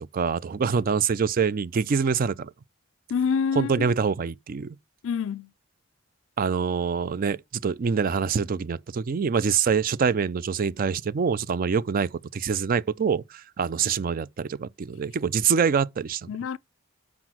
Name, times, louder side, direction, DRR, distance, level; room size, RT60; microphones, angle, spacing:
voice 1, 0.0-2.5 3.6-4.8 6.4-16.3, right 6 dB, 45° right, 0.4 m, -25 dB
voice 2, 3.1-3.9 5.0-5.5 16.3-16.6, left 6 dB, 75° left, 0.4 m, -27 dB
6.0 x 4.8 x 6.0 m
head